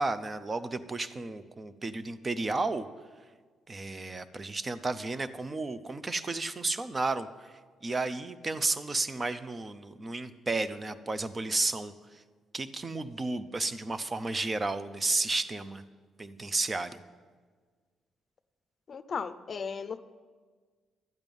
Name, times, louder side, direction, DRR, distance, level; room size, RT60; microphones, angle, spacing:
voice 1, 0.0-2.9 3.7-7.5 7.8-12.2 12.5-15.8 16.2-17.0, right 3 dB, 25° right, 13 dB, 0.6 m, -32 dB
voice 2, 18.9-20.0, left 6 dB, 45° left, 13 dB, 0.6 m, -36 dB
12.0 x 8.9 x 5.4 m, 1.5 s
cardioid pair, 90°, 0 cm